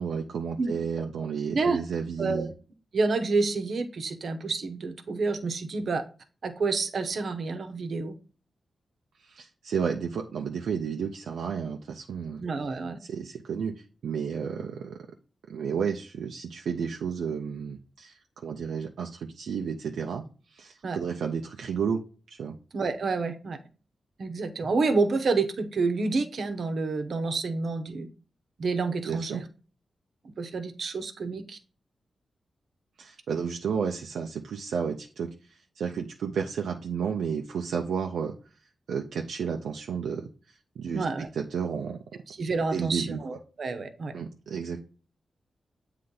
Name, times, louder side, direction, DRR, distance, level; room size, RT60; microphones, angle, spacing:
voice 1, 0.0-2.5 9.2-12.4 13.0-15.1 15.5-20.3 20.5-22.0 22.3-22.5 29.1-29.4 33.0-38.4 38.9-40.3 40.8-42.0 42.7-43.2 44.1-44.8, right 6 dB, 85° right, 2 dB, 0.4 m, -32 dB
voice 2, 2.2-2.5 2.9-6.0 6.4-8.1 12.4-13.0 20.8-21.0 22.7-23.6 24.2-28.1 28.6-29.5 30.2-31.6 40.9-41.3 42.3-44.1, right 3 dB, 65° right, 7 dB, 0.8 m, -28 dB
7.7 x 3.2 x 3.8 m, 0.37 s
cardioid pair, 50°, 0 cm